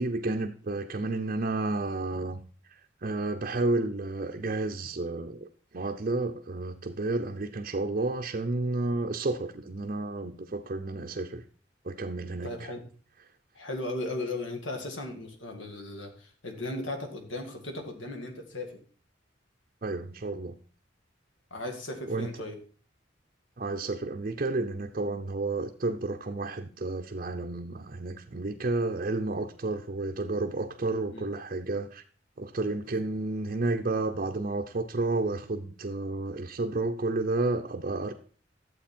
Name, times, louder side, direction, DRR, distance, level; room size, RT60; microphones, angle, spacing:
voice 1, 0.0-2.4 2.7-5.5 5.7-11.4 11.8-12.7 19.8-20.5 22.1-22.3 23.6-32.0 32.4-38.1, right 2 dB, 45° right, 0.6 m, -31 dB
voice 2, 12.4-12.9 13.5-18.8 21.5-22.6 31.1-31.3, left 2 dB, 80° left, 2.0 m, -36 dB
11.5 x 7.8 x 4.4 m
head